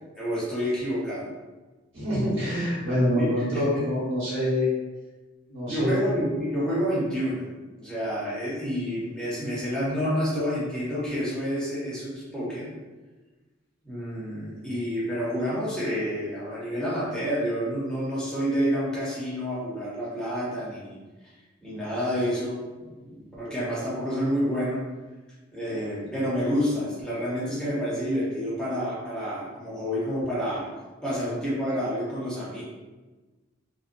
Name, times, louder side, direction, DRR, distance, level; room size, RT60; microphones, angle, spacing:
voice 1, 0.2-1.3 3.2-3.8 5.7-7.4 7.7-12.7 13.8-21.0 21.2-21.3 21.6-24.8 25.5-30.7 31.0-32.6, equal, 5° left, -9 dB, 0.7 m, -29 dB
voice 2, 1.9-4.7 5.5-6.0, equal, 70° right, -9 dB, 1.2 m, -25 dB
2.6 x 2.0 x 2.5 m, 1.2 s
head